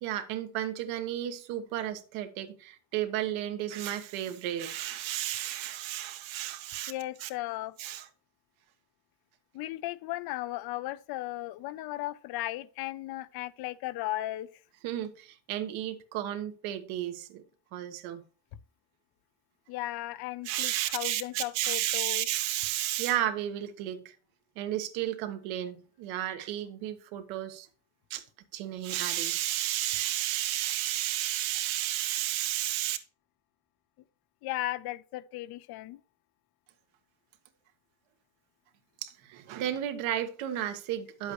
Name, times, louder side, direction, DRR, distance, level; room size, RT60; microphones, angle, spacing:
voice 1, 0.0-6.9 7.2-7.3 7.8-8.1 14.8-17.4 17.7-18.2 20.4-24.1 24.5-27.7 28.1-28.2 28.5-33.0 39.0-41.3, right 12 dB, 80° right, 1.4 m, -33 dB
voice 2, 6.9-7.8 9.5-14.5 19.7-22.3 34.4-36.0, left 16 dB, 55° left, 0.6 m, -36 dB
10.5 x 7.9 x 3.0 m
cardioid pair, 165°, 46 cm